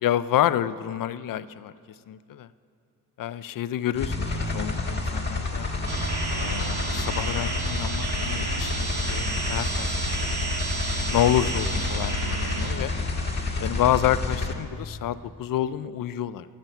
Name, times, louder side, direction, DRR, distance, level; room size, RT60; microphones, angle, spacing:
voice 1, 0.0-1.7 2.1-2.5 3.2-5.7 6.3-9.9 10.2-10.4 11.1-12.9 13.6-16.5, left 11 dB, 65° left, 15 dB, 0.5 m, -28 dB
sound 1, 4.0-14.5, left 3 dB, 30° left, 1.5 m, -29 dB
sound 2, 5.9-12.7, right 4 dB, 50° right, 1.9 m, -31 dB
12.5 x 7.6 x 9.0 m, 2.3 s
cardioid pair, 95°, 37 cm